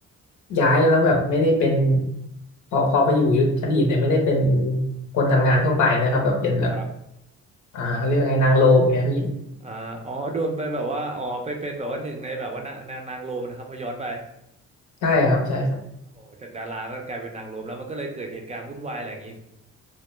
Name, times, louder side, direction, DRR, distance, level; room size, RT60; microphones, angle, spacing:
voice 1, 0.5-2.1 2.7-4.8 5.1-6.7 7.7-9.3 15.0-15.8, left 1 dB, 75° left, 1 dB, 0.7 m, -19 dB
voice 2, 9.6-14.2 16.1-19.4, right 2 dB, 25° right, 2 dB, 0.4 m, -32 dB
2.2 x 2.1 x 3.0 m, 0.80 s
cardioid pair, 90°, 30 cm